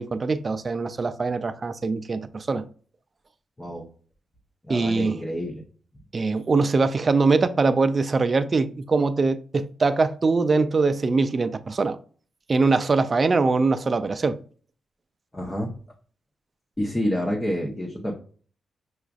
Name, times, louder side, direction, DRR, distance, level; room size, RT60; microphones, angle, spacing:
voice 1, 0.0-2.6 4.7-5.2 6.1-12.0 12.5-14.4, right 3 dB, 40° right, 0.3 m, -22 dB
voice 2, 4.6-5.6 15.3-15.7 16.8-18.1, equal, 15° left, 0.8 m, -28 dB
5.8 x 2.4 x 2.3 m
cardioid pair, 90°, 0 cm